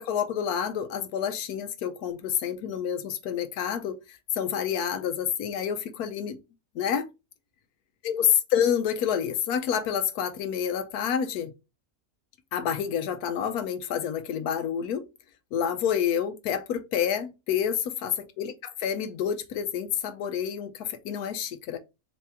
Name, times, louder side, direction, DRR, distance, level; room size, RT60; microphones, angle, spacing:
voice 1, 0.0-6.4 6.7-7.0 8.0-11.5 12.5-15.0 15.5-21.8, left 8 dB, 90° left, 1.1 m, -28 dB
4.1 x 2.9 x 3.4 m
omnidirectional pair, 1.6 m